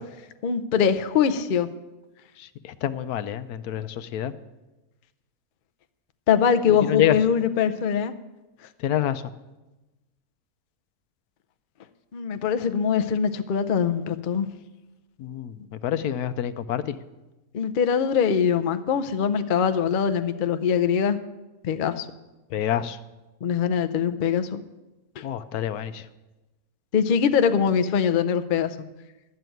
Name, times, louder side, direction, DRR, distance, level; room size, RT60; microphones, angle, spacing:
voice 1, 0.4-1.7 6.3-8.1 12.1-14.5 17.5-21.2 21.6-22.1 23.4-24.6 25.2-25.3 26.9-28.7, left 7 dB, 50° left, 10 dB, 0.6 m, -22 dB
voice 2, 2.6-4.3 6.9-7.2 8.8-9.2 15.2-15.5 15.8-16.9 22.5-23.0 25.2-26.0, left 10 dB, 80° left, 12 dB, 1.2 m, -26 dB
12.5 x 6.7 x 9.2 m, 1.1 s
omnidirectional pair, 1.6 m